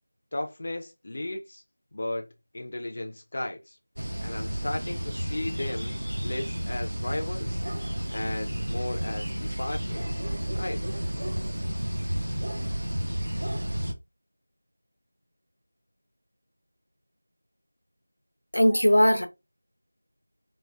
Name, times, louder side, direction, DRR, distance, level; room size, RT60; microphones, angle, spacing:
voice 1, 0.3-1.6 1.9-2.2 2.5-3.8 4.2-7.6 8.1-10.2 10.6-10.8, left 1 dB, 40° left, 0.3 m, -35 dB
sound 1, 4.0-13.9, equal, 80° right, 0.5 m, -31 dB
voice 2, 18.5-19.3, equal, 90° left, 0.6 m, -19 dB
3.2 x 2.0 x 2.2 m
figure-of-eight pair, 175°, 0 cm